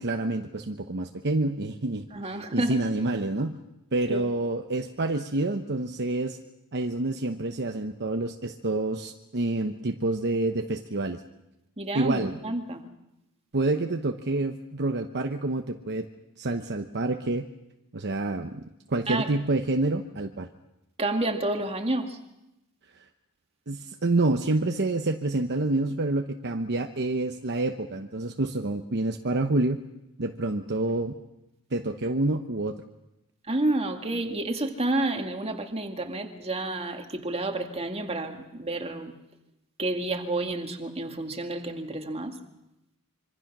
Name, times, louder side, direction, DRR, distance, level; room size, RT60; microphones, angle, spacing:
voice 1, 0.0-3.6 3.9-6.4 6.7-11.2 11.9-12.4 13.5-16.1 16.4-17.5 17.9-20.5 23.7-29.8 30.2-31.1 31.7-32.8, right 2 dB, 50° right, 5 dB, 1.0 m, -28 dB
voice 2, 2.1-2.8 4.1-4.3 11.8-12.8 19.1-19.3 21.0-22.2 33.5-39.1 39.8-42.4, right 2 dB, 30° right, 4 dB, 2.1 m, -29 dB
26.0 x 24.5 x 6.1 m, 0.91 s
head